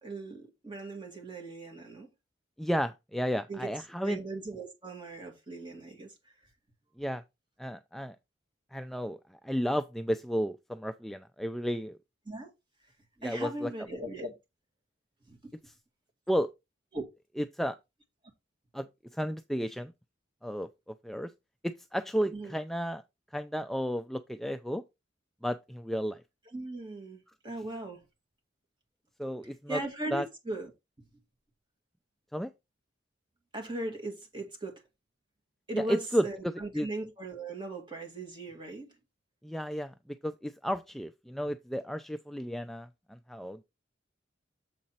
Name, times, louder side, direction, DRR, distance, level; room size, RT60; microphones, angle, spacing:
voice 1, 0.0-2.1 3.5-3.7 4.0-6.3 12.3-12.5 13.2-14.3 15.3-15.5 16.9-17.1 22.3-22.5 26.5-28.0 29.7-30.7 33.5-34.8 35.7-38.9, right 2 dB, 25° right, 2.1 m, -38 dB
voice 2, 2.6-4.2 7.0-7.2 7.6-8.2 8.7-9.2 9.4-12.0 13.2-13.7 16.3-16.5 17.4-17.8 18.7-19.9 20.4-21.3 21.6-23.0 23.3-24.8 25.4-26.2 29.2-29.8 30.1-30.2 32.3-32.5 35.7-36.3 36.7-36.9 39.4-39.9 40.2-43.6, equal, ahead, 0.3 m, -32 dB
7.5 x 4.0 x 4.3 m
head